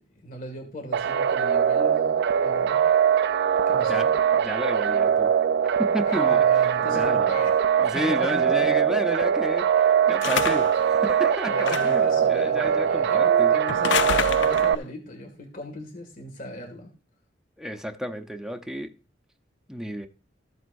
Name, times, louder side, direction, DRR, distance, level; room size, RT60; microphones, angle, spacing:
voice 1, 0.0-2.9 3.7-4.1 6.0-7.6 7.9-9.0 11.5-16.9, left 1 dB, 50° left, 2.1 m, -38 dB
sound 1, 0.9-14.8, right 8 dB, 60° right, 0.4 m, -22 dB
voice 2, 4.3-5.3 5.8-6.4 6.9-7.4 7.8-9.7 10.1-13.6 17.6-18.9 19.7-20.1, equal, 5° right, 0.8 m, -31 dB
sound 2, 10.2-10.8 11.6-12.1 13.7-14.8, left 7 dB, 70° left, 0.4 m, -27 dB
14.5 x 7.9 x 2.6 m
head